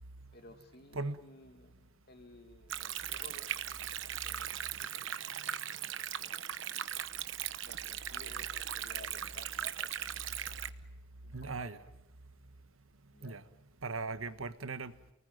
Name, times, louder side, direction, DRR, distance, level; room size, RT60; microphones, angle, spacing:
voice 1, 0.3-6.9 7.6-10.1 11.2-11.8 13.1-13.4, left 2 dB, 50° left, 6 dB, 2.1 m, -56 dB
Stream, 2.7-10.7, right 10 dB, 65° right, 1.0 m, -39 dB
voice 2, 11.3-11.8 13.2-13.4 13.8-14.9, right 3 dB, 90° right, 11 dB, 1.4 m, -38 dB
29.0 x 19.5 x 9.3 m, 0.85 s
head